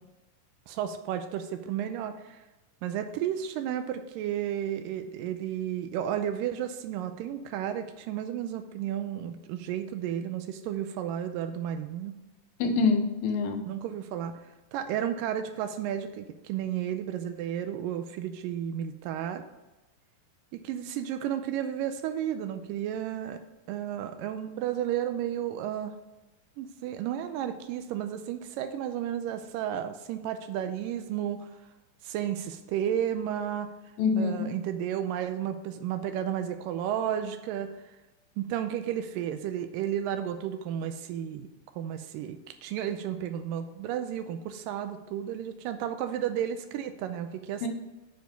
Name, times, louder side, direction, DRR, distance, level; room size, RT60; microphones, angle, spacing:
voice 1, 0.7-2.4 2.8-12.1 13.7-19.4 20.5-23.4 23.7-25.9 26.6-31.6 32.0-37.7 38.4-41.5 41.7-47.7, right 10 dB, 80° right, 9 dB, 2.0 m, -33 dB
voice 2, 12.6-13.7 34.0-34.6 47.6-47.7, left 4 dB, 75° left, 4 dB, 2.6 m, -26 dB
9.2 x 4.8 x 5.2 m, 1.1 s
omnidirectional pair, 4.3 m